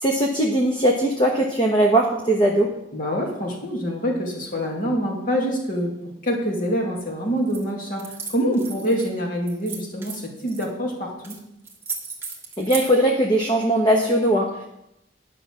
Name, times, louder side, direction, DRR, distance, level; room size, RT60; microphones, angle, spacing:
voice 1, 0.0-2.7 12.6-14.6, right 1 dB, 25° left, 1 dB, 1.0 m, -20 dB
voice 2, 2.9-5.9 6.2-11.4, equal, 45° left, -1 dB, 2.3 m, -25 dB
sound 1, 7.5-7.6 8.0-9.1 9.5-10.7 11.2-11.4 11.6-12.9, right 4 dB, 10° right, 1.3 m, -34 dB
10.5 x 5.8 x 6.3 m, 0.83 s
head